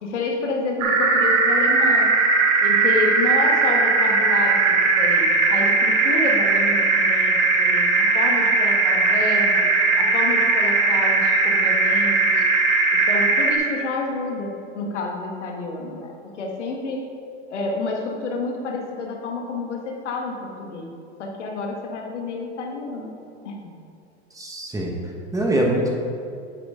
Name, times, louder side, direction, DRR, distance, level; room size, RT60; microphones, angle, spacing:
voice 1, 0.0-2.1 2.6-9.7 10.0-12.4 12.9-17.1 17.5-20.9 21.2-23.1 23.4-23.5, left 3 dB, 90° left, 1 dB, 1.5 m, -29 dB
sound 1, 0.8-13.6, right 3 dB, 45° right, 1.6 m, -19 dB
voice 2, 24.3-25.9, right 1 dB, 10° right, -1 dB, 1.4 m, -24 dB
10.0 x 6.4 x 3.7 m, 2.5 s
hypercardioid pair, 110°, 35 cm